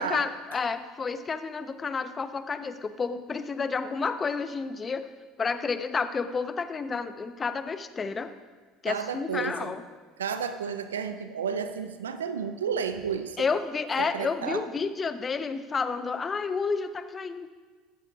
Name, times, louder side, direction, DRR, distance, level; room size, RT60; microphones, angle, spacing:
voice 1, 0.0-5.1 5.4-8.3 8.8-9.8 13.4-17.5, left 5 dB, 30° left, 11 dB, 0.8 m, -30 dB
voice 2, 8.9-9.7 10.2-13.4 14.0-14.6, right 6 dB, 85° right, 10 dB, 0.6 m, -32 dB
14.5 x 13.5 x 2.4 m, 1.4 s
hypercardioid pair, 70°, 0 cm